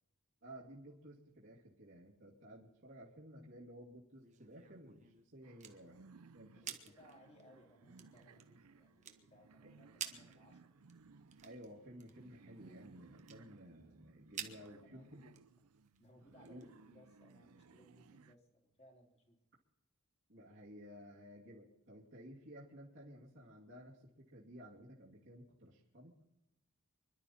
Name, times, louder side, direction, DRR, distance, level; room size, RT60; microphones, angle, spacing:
voice 1, 0.4-6.0 6.3-6.6 6.8-6.9 9.6-9.7 11.4-15.3 16.4-16.7 20.3-26.2, equal, 55° right, -5 dB, 2.4 m, -55 dB
sound 1, 4.1-17.1, right 8 dB, 35° right, 1.2 m, -53 dB
sound 2, 5.4-18.3, right 4 dB, 90° right, 0.6 m, -62 dB
voice 2, 6.6-10.7 14.4-15.2 16.0-19.4, equal, 30° left, 0 dB, 3.3 m, -64 dB
25.5 x 12.0 x 4.2 m, 0.89 s
head